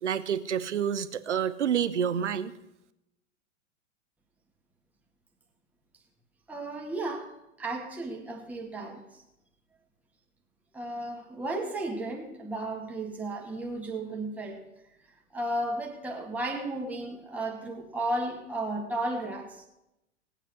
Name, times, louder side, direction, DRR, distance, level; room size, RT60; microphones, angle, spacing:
voice 1, 0.0-2.5, right 8 dB, 70° right, 1.0 m, -28 dB
voice 2, 6.5-9.2 10.7-14.6 15.3-19.6, right 2 dB, 5° right, 1.8 m, -34 dB
18.5 x 8.9 x 5.3 m
figure-of-eight pair, 100°, 37 cm